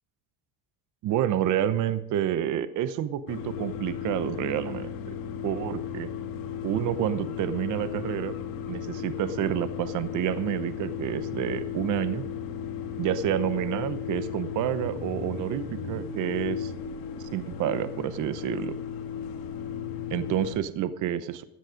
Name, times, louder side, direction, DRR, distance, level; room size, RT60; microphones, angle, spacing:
voice 1, 1.0-4.9 5.4-6.1 6.6-8.3 8.7-12.2 13.0-16.7 17.3-18.8 20.1-21.4, right 10 dB, 50° right, 13 dB, 0.9 m, -29 dB
sound 1, 3.3-20.6, left 8 dB, 65° left, 2.0 m, -35 dB
14.5 x 9.5 x 5.1 m, 0.83 s
cardioid pair, 135°, 38 cm